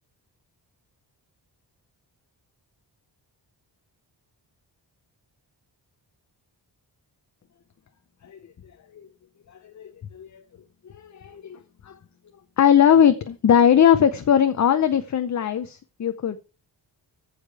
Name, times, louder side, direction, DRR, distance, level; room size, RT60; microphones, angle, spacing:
voice 1, 9.5-10.4 10.8-12.0 12.6-16.4, left 8 dB, 40° left, 9 dB, 0.7 m, -20 dB
15.0 x 5.2 x 4.7 m, 0.31 s
wide cardioid pair, 180°, 42 cm